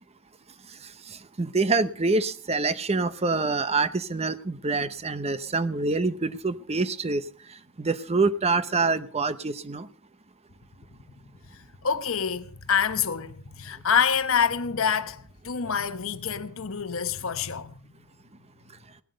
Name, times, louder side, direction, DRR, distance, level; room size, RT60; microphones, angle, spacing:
voice 1, 1.1-7.2 7.8-9.9, right 3 dB, 30° right, 0.8 m, -26 dB
voice 2, 11.5-17.8, left 7 dB, 70° left, 1.0 m, -27 dB
17.5 x 11.5 x 5.2 m
head